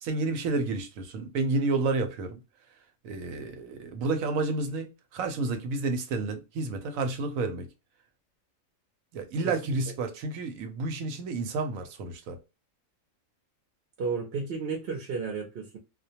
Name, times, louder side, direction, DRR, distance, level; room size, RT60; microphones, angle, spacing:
voice 1, 0.0-2.4 3.0-7.7 9.1-12.4, right 3 dB, 80° right, 1.0 m, -30 dB
voice 2, 9.4-9.8 14.0-15.8, right 5 dB, 60° right, 0.7 m, -33 dB
2.3 x 2.2 x 2.7 m
omnidirectional pair, 1.4 m